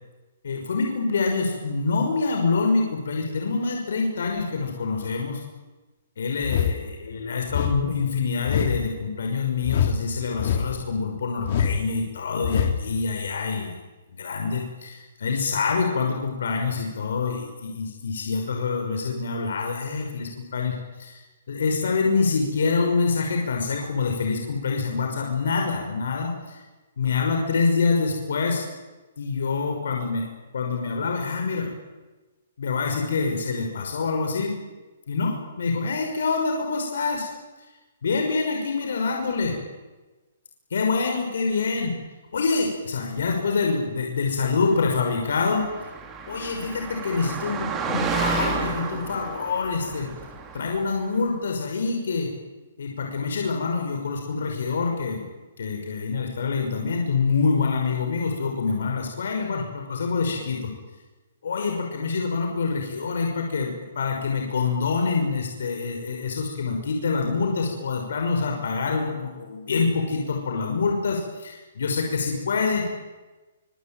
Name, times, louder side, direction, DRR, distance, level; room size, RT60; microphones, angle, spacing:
voice 1, 0.4-5.4 6.2-13.7 14.1-21.2 21.5-26.6 27.0-28.6 29.2-30.3 30.5-31.7 32.6-34.5 35.1-37.3 38.0-39.6 40.7-41.9 42.3-45.7 46.3-50.1 50.5-52.3 52.8-55.3 55.6-60.7 61.4-72.9, left 4 dB, 75° left, 2 dB, 5.7 m, -26 dB
sound 1, 6.4-6.8 7.5-7.8 8.5-8.8 9.6-10.0 10.4-10.8 11.4-11.8 12.4-12.8, left 8 dB, 45° left, 2.7 m, -24 dB
Car passing by, 45.0-51.0, right 5 dB, 15° right, 3.4 m, -31 dB
24.5 x 24.5 x 9.2 m, 1.2 s
hypercardioid pair, 165°, 0 cm